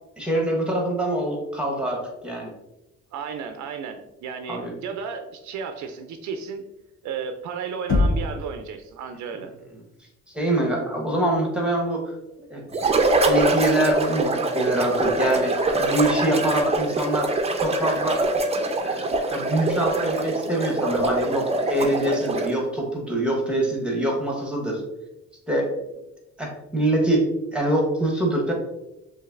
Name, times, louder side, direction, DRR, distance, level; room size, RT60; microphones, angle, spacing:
voice 1, 0.2-2.5 4.5-4.7 10.3-12.1 12.5-12.6 13.2-17.3 17.6-18.2 18.8-24.8 25.5-25.7 26.4-27.2 27.5-28.5, right 1 dB, 5° right, -1 dB, 1.2 m, -24 dB
voice 2, 3.1-6.7 7.0-9.5, right 6 dB, 70° right, 7 dB, 0.5 m, -33 dB
Knock, 7.9-8.5, left 2 dB, 45° left, 0.8 m, -21 dB
sound 1, 12.7-22.6, right 2 dB, 20° right, 0.5 m, -24 dB
6.3 x 2.6 x 2.5 m, 0.95 s
cardioid pair, 90°, 30 cm